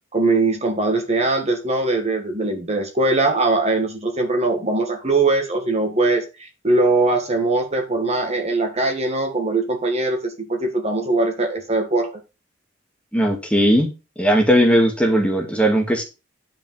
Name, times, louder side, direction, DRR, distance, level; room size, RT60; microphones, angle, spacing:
voice 1, 0.1-12.1, right 2 dB, 35° right, 4 dB, 1.9 m, -21 dB
voice 2, 13.1-13.9 14.2-16.0, equal, 5° left, 2 dB, 2.1 m, -17 dB
10.5 x 5.2 x 5.6 m, 0.28 s
head